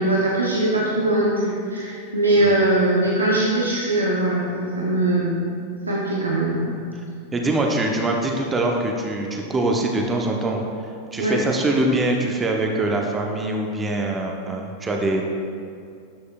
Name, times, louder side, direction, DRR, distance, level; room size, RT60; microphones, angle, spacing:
voice 1, 0.0-5.5 5.9-6.8 11.2-11.4, right 1 dB, 80° right, -5 dB, 1.0 m, -21 dB
voice 2, 7.3-10.6 11.1-15.2, right 2 dB, 15° right, 1 dB, 0.9 m, -23 dB
12.0 x 6.5 x 2.4 m, 2.3 s
figure-of-eight pair, 90°, 0 cm